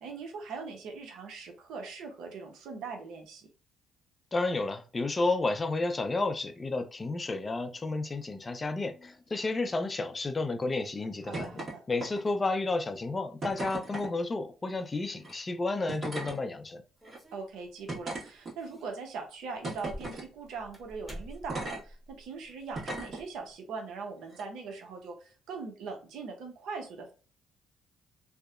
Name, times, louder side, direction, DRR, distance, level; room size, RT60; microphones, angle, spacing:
voice 1, 0.0-3.5 11.2-11.8 17.3-27.1, right 4 dB, 80° right, 0.7 m, -41 dB
voice 2, 4.3-11.6 11.9-16.8, left 3 dB, 30° left, 0.4 m, -31 dB
sound 1, 11.3-11.7 12.0-12.4 13.4-14.1 15.2-15.3 15.9-16.4 17.0-17.2 17.9-18.8 19.6-20.3 21.5-21.8 22.7-23.2 24.3-24.4, right 2 dB, 45° right, 1.3 m, -37 dB
sound 2, 17.0-18.0 18.6-19.0 19.4-23.5, equal, ahead, 0.9 m, -49 dB
2.7 x 2.1 x 2.4 m
supercardioid pair, 70°, 0 cm